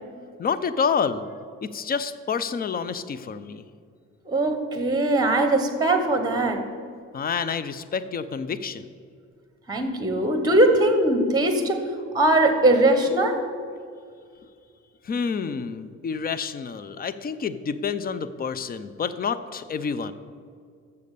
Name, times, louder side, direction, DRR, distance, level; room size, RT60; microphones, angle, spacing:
voice 1, 0.4-1.3 1.6-3.6 7.1-8.9 15.0-20.1, left 6 dB, 30° left, 14 dB, 0.5 m, -28 dB
voice 2, 4.3-6.6 9.7-11.8 12.1-13.4, right 1 dB, 15° right, 6 dB, 1.1 m, -20 dB
7.1 x 6.7 x 6.6 m, 2.2 s
cardioid pair, 90°, 30 cm